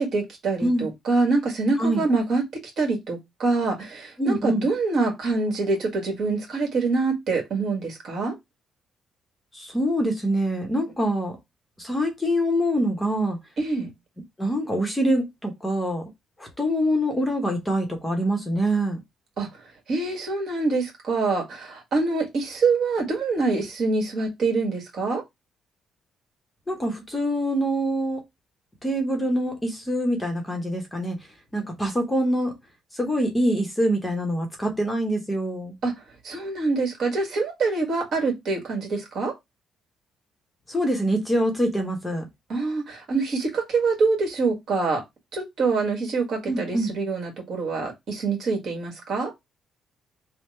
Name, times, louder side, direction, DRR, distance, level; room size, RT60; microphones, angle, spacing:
voice 1, 0.0-2.4 2.8-8.3 13.6-13.9 19.4-19.5 19.9-25.2 35.8-35.9 36.2-39.3 42.5-45.0 45.3-49.3, right 3 dB, 55° right, 1.6 m, -25 dB
voice 2, 4.2-4.6 9.5-11.4 11.8-13.4 14.4-16.1 16.4-19.0 26.7-28.2 28.8-31.2 31.5-32.5 32.9-35.7 40.7-42.2 46.5-46.9, equal, 10° left, 0.8 m, -25 dB
3.3 x 2.1 x 4.2 m
cardioid pair, 140°, 0 cm